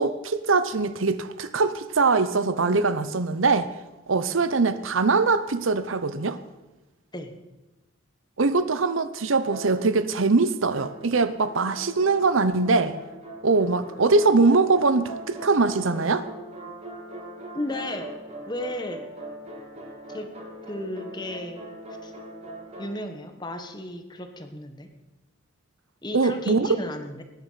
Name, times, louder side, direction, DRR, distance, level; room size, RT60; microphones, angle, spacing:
voice 1, 0.0-3.7 4.1-6.4 8.4-13.0 13.4-16.3 26.1-26.7, right 3 dB, 75° right, 12 dB, 0.8 m, -22 dB
sound 1, 9.5-10.3 10.7-22.9, right 1 dB, 30° right, 2.6 m, -41 dB
voice 2, 17.5-18.1 18.5-19.1 20.1-20.3 20.7-21.6 22.0-22.1 22.8-24.9 26.0-27.2, left 1 dB, 20° left, 6 dB, 1.4 m, -34 dB
19.5 x 10.0 x 5.8 m, 1.1 s
head